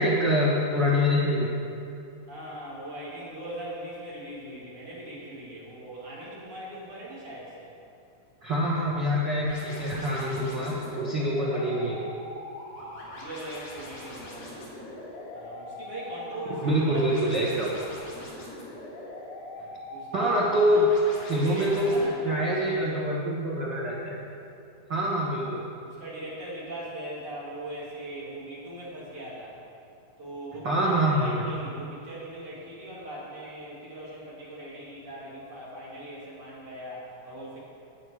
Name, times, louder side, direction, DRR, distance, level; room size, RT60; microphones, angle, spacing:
voice 1, 0.0-1.5 8.4-12.1 16.6-17.7 20.1-20.8 21.2-24.1 24.9-25.6 30.6-31.4, equal, 85° right, -5 dB, 1.0 m, -25 dB
voice 2, 2.3-7.7 11.4-12.3 12.7-14.7 15.3-17.7 19.9-20.7 21.3-22.9 25.8-29.6 30.2-37.6, right 1 dB, 40° right, -7 dB, 3.2 m, -40 dB
sound 1, 9.5-22.0, left 1 dB, 80° left, 4.2 m, -42 dB
11.0 x 8.7 x 4.9 m, 2.6 s
omnidirectional pair, 4.1 m